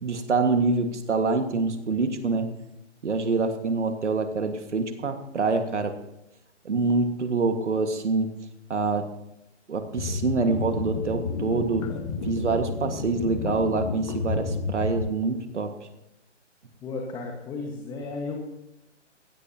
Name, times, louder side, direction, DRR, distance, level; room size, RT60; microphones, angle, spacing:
voice 1, 0.0-2.5 3.0-6.0 6.7-8.3 8.7-9.1 9.7-11.9 12.2-15.8, right 3 dB, 70° right, 7 dB, 1.8 m, -26 dB
sound 1, 10.0-15.0, left 4 dB, 30° left, 1.4 m, -31 dB
voice 2, 16.8-18.4, left 3 dB, 10° left, 1 dB, 1.4 m, -34 dB
21.5 x 16.5 x 2.9 m, 0.87 s
figure-of-eight pair, 140°, 36 cm